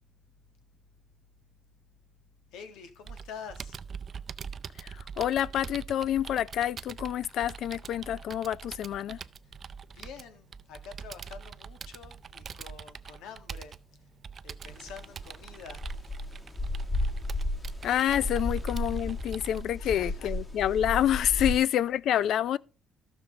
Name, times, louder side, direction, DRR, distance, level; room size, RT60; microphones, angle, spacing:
voice 1, 2.5-3.8 9.9-14.1 14.4-16.2 19.8-20.3 21.4-21.6, left 6 dB, 90° left, 1.7 m, -47 dB
Computer keyboard, 3.1-19.6, right 6 dB, 40° right, 0.4 m, -44 dB
voice 2, 4.8-9.2 17.8-22.6, left 11 dB, 65° left, 0.4 m, -28 dB
sound 1, 14.6-21.6, left 1 dB, 20° left, 1.7 m, -33 dB
14.0 x 6.0 x 3.9 m
cardioid pair, 115°, 0 cm